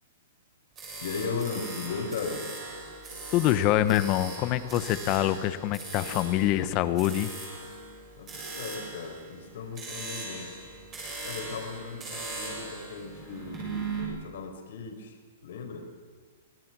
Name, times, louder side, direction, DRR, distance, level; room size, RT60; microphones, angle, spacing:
sound 1, 0.8-14.0, right 3 dB, 15° right, 6.8 m, -40 dB
voice 1, 1.0-2.5 8.2-10.6 11.2-15.2 15.4-15.9, left 5 dB, 55° left, 3 dB, 4.8 m, -37 dB
voice 2, 3.3-7.3, left 13 dB, 25° left, 14 dB, 0.9 m, -25 dB
24.5 x 18.5 x 6.2 m, 1.5 s
hypercardioid pair, 175°, 0 cm